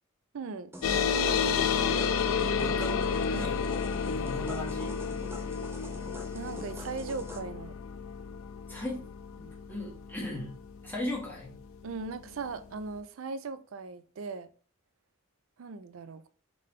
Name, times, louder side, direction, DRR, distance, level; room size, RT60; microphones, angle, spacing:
voice 1, 0.3-0.7 1.1-2.0 3.3-3.6 6.3-7.7 11.8-14.5 15.6-16.3, right 4 dB, 75° right, 0.4 m, -39 dB
sound 1, 0.7-7.4, equal, 10° right, 0.5 m, -46 dB
sound 2, 0.8-11.7, left 6 dB, 75° left, 0.4 m, -31 dB
voice 2, 2.6-3.6 4.1-5.0 8.7-9.1 9.4-10.6 10.8-11.6, left 1 dB, 10° left, 1.5 m, -38 dB
3.8 x 3.7 x 3.1 m
head